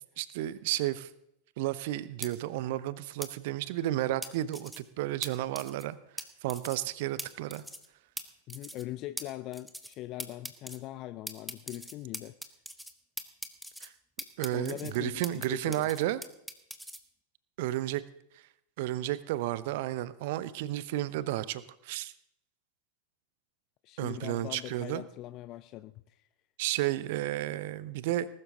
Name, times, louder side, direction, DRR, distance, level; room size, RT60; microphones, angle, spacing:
voice 1, 0.2-1.1 1.6-6.0 6.4-7.6 13.8-13.9 14.4-16.2 17.6-18.0 18.8-22.1 24.0-25.0 26.6-28.3, right 14 dB, 50° right, 17 dB, 0.8 m, -32 dB
sound 1, 2.2-2.3 3.2-3.3 4.2-4.8 5.2-5.3 5.5-5.8 6.2-6.3 6.5-6.8 7.2-7.3 7.5-7.9 8.2-8.3 8.5-8.8 9.2-9.3 9.5-9.9 10.2-10.8 11.3-12.9 13.2-13.9 14.2-15.5 15.7-17.0, equal, ahead, 1.2 m, -40 dB
voice 2, 8.5-12.3 14.5-15.9 23.8-26.3, left 15 dB, 35° left, 15 dB, 0.4 m, -41 dB
19.5 x 12.0 x 3.8 m, 0.78 s
figure-of-eight pair, 90°, 0 cm